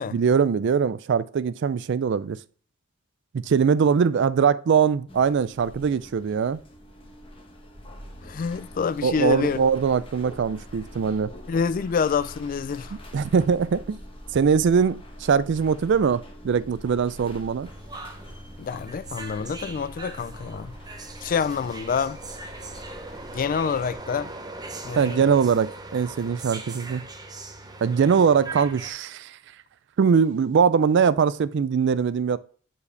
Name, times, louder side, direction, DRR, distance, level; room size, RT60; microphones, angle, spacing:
voice 1, 0.1-2.4 3.3-6.6 9.0-11.3 12.9-14.0 14.3-17.7 25.0-27.1 27.8-29.4 30.0-32.4, right 6 dB, 60° right, 0.4 m, -22 dB
sound 1, 5.1-24.0, equal, 25° left, 1.1 m, -44 dB
voice 2, 8.2-9.6 11.5-13.0 18.6-20.7 21.2-22.2 23.3-24.3 24.8-25.3, left 6 dB, 40° left, 0.3 m, -27 dB
sound 2, 17.6-28.9, right 2 dB, 20° right, 0.6 m, -40 dB
6.9 x 4.8 x 3.2 m
head